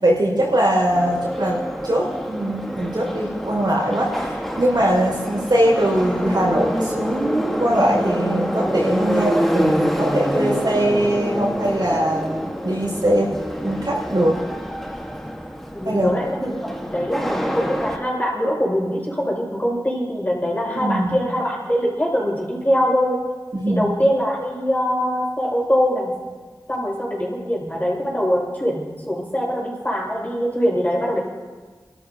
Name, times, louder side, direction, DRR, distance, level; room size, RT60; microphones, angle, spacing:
voice 1, 0.0-13.3 13.6-14.4 15.8-16.1 20.7-21.2 23.5-23.9, right 1 dB, 65° right, -3 dB, 5.4 m, -21 dB
Subway metro underground, 0.9-18.0, equal, 5° left, 1.5 m, -26 dB
voice 2, 15.7-23.2 23.7-26.1 26.7-31.2, equal, 20° left, -4 dB, 5.9 m, -23 dB
27.5 x 13.0 x 2.9 m, 1.4 s
wide cardioid pair, 45°, 8 cm